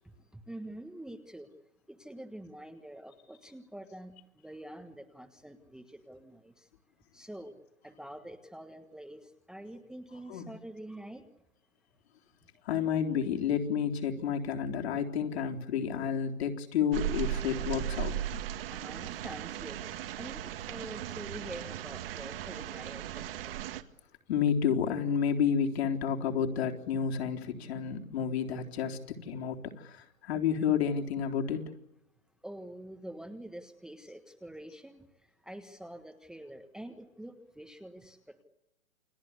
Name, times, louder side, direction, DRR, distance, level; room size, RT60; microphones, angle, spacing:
voice 1, 0.3-1.5 1.9-6.7 7.1-7.6 7.8-11.2 18.7-23.6 32.4-35.0 35.4-38.4, right 1 dB, ahead, 1.4 m, -46 dB
voice 2, 12.7-18.1 24.3-31.7, left 7 dB, 50° left, 3.9 m, -30 dB
sound 1, 16.9-23.8, right 11 dB, 45° right, 2.0 m, -37 dB
29.5 x 21.5 x 8.3 m
hypercardioid pair, 135°, 40 cm